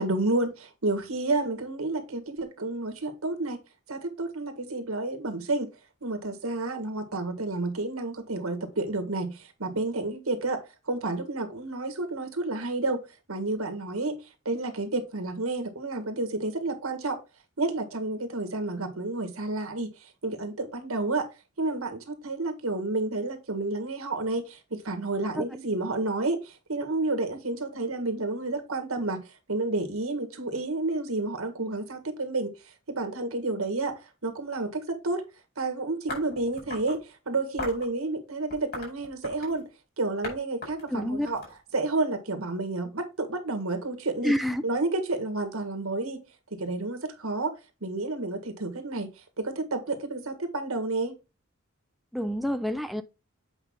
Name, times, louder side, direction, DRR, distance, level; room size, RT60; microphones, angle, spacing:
voice 1, 0.0-3.6 3.9-5.7 6.0-10.6 10.9-13.0 13.3-14.2 14.5-17.2 17.6-21.3 21.6-29.2 29.5-32.5 32.9-33.9 34.2-35.2 35.6-39.7 40.0-41.4 41.7-44.3 44.6-46.2 46.5-47.5 47.8-51.1, right 2 dB, 90° right, 1.7 m, -30 dB
sound 1, 36.1-37.0 37.6-37.9 38.5-39.6 40.2-40.4 40.6-42.0, left 2 dB, 50° left, 4.9 m, -38 dB
voice 2, 40.9-41.3 44.2-44.6 52.1-53.0, equal, ahead, 0.4 m, -28 dB
8.1 x 5.2 x 3.7 m
head